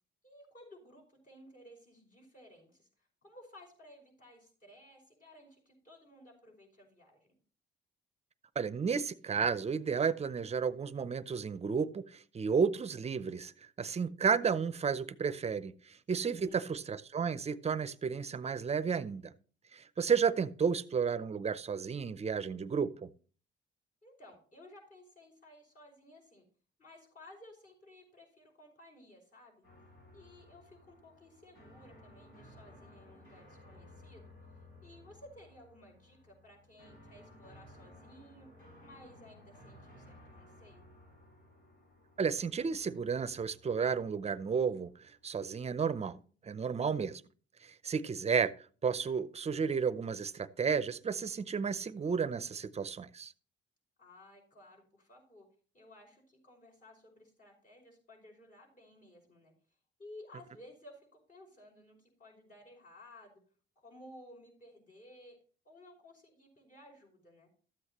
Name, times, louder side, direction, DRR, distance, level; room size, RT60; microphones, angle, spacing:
voice 1, 0.2-7.3 16.2-16.8 24.0-26.5 26.8-29.6 30.1-34.3 34.8-38.5 38.8-40.9 54.0-55.5 55.7-59.5 60.0-63.4 63.8-65.4 65.7-67.5, left 1 dB, 40° left, 0 dB, 5.3 m, -56 dB
voice 2, 8.6-13.5 13.8-15.7 16.1-19.3 19.7-23.1 42.2-44.9 45.2-46.2 46.4-47.2 47.6-48.5 48.8-53.3, right 6 dB, 30° right, 15 dB, 0.6 m, -32 dB
sound 1, 29.6-45.6, left 1 dB, 80° left, 5.8 m, -58 dB
13.0 x 8.1 x 3.0 m, 0.41 s
cardioid pair, 90°, 20 cm